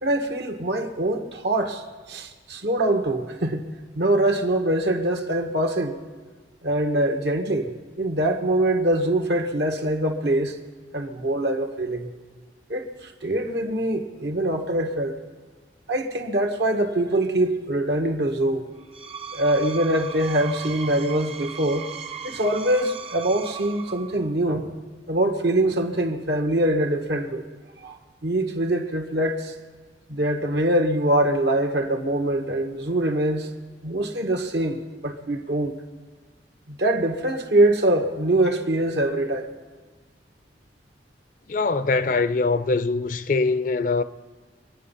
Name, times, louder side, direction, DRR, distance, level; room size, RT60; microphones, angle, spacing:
voice 1, 0.0-3.7 3.9-6.0 6.6-10.6 10.9-12.1 12.7-15.2 15.9-18.7 19.3-21.9 22.2-24.7 25.1-27.5 27.8-29.5 30.1-33.5 33.8-35.8 36.7-39.5, right 1 dB, 70° right, 1.6 m, -23 dB
Screech, 18.8-24.3, right 7 dB, 30° right, 0.8 m, -37 dB
voice 2, 41.5-44.0, left 3 dB, 45° left, 0.5 m, -23 dB
24.5 x 9.2 x 5.6 m
head